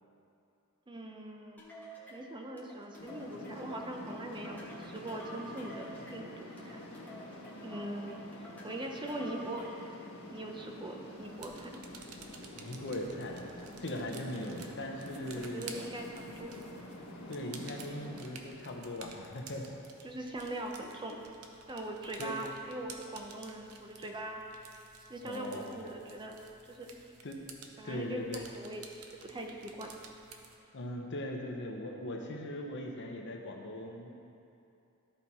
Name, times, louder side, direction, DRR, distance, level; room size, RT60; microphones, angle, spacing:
voice 1, 0.9-1.6 2.1-6.8 7.6-9.9 10.3-11.8 15.5-16.5 20.0-21.2 21.7-24.4 25.1-26.4 26.7-27.0 27.8-28.8 29.2-29.9, right 1 dB, 20° right, 2 dB, 0.6 m, -41 dB
sound 1, 1.6-9.9, equal, 10° left, 1.2 m, -50 dB
sound 2, 3.0-18.2, left 1 dB, 75° left, 1.3 m, -48 dB
sound 3, 11.2-30.6, right 5 dB, 80° right, 0.7 m, -53 dB
voice 2, 12.6-13.5 13.8-15.7 17.3-19.8 22.2-22.4 25.2-25.7 27.2-27.4 27.8-28.4 30.7-34.1, left 1 dB, 55° left, 1 dB, 0.9 m, -39 dB
13.0 x 4.5 x 4.2 m, 2.7 s
head